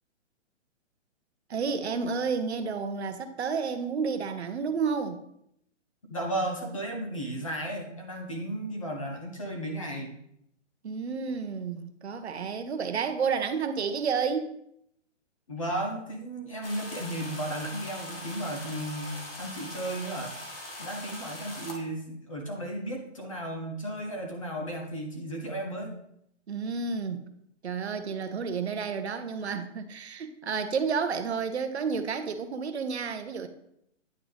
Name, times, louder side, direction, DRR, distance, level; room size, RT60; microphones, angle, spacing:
voice 1, 1.5-5.2 10.8-14.5 26.5-27.2 27.6-33.5, right 5 dB, 60° right, 9 dB, 0.7 m, -31 dB
voice 2, 6.1-10.2 15.5-20.3 20.8-25.9, right 1 dB, 25° left, 1 dB, 0.8 m, -34 dB
sound 1, 16.6-21.8, left 1 dB, 50° left, 1.4 m, -41 dB
9.4 x 3.8 x 3.4 m, 0.74 s
hypercardioid pair, 180°, 37 cm